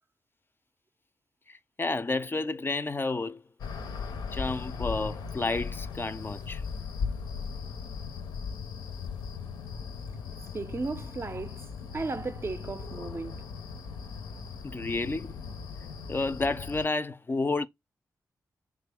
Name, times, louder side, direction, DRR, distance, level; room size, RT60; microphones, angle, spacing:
voice 1, 1.5-3.4 4.3-6.6 14.6-15.4 16.1-17.7, left 3 dB, 30° left, 0.4 m, -31 dB
sound 1, 3.6-16.9, left 5 dB, 85° left, 0.5 m, -38 dB
voice 2, 10.5-11.7 11.9-13.4, right 3 dB, 35° right, 0.4 m, -35 dB
3.3 x 2.3 x 3.4 m
supercardioid pair, 45°, 7 cm